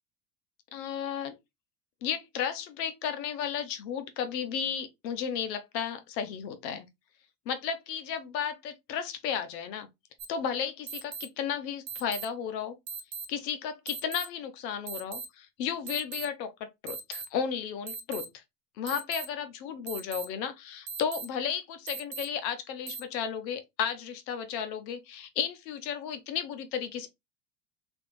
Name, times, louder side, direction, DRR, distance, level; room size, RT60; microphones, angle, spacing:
voice 1, 0.7-1.4 2.0-6.9 7.5-9.9 10.3-12.8 13.3-18.3 18.8-27.1, left 8 dB, 80° left, 0.8 m, -34 dB
sound 1, 10.2-10.3 10.9-11.3 11.9-12.3 12.9-13.3 13.9-14.3 14.9-15.3 15.9-16.3 16.9-17.2 17.9-18.2 18.9-19.2 19.9-20.2 20.9-21.2 21.9-22.2 22.9-23.0, right 5 dB, 40° right, 0.9 m, -38 dB
3.1 x 2.6 x 3.1 m
supercardioid pair, 100°, 50 cm